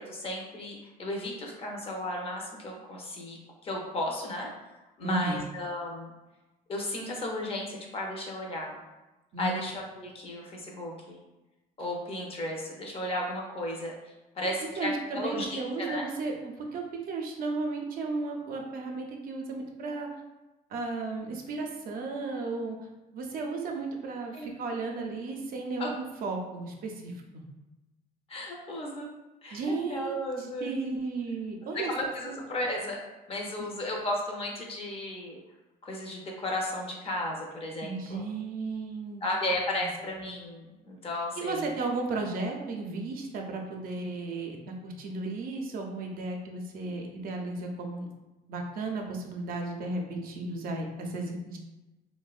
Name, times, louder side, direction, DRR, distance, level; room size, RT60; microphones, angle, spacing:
voice 1, 0.0-4.5 5.0-6.1 6.7-8.7 9.4-11.2 11.8-13.9 14.4-16.1 24.3-24.6 25.8-25.9 28.3-29.1 29.4-31.0 31.7-33.0 33.3-35.4 35.8-38.2 39.2-41.7, left 1 dB, 35° left, -1 dB, 0.6 m, -34 dB
voice 2, 5.0-5.4 9.3-9.6 14.8-20.1 20.7-22.8 23.1-27.4 29.5-31.9 32.2-32.4 33.6-33.7 37.8-39.2 39.8-39.9 41.4-48.1 48.5-51.6, right 3 dB, 60° right, 1 dB, 0.5 m, -34 dB
2.6 x 2.1 x 2.3 m, 1.1 s
cardioid pair, 110°, 17 cm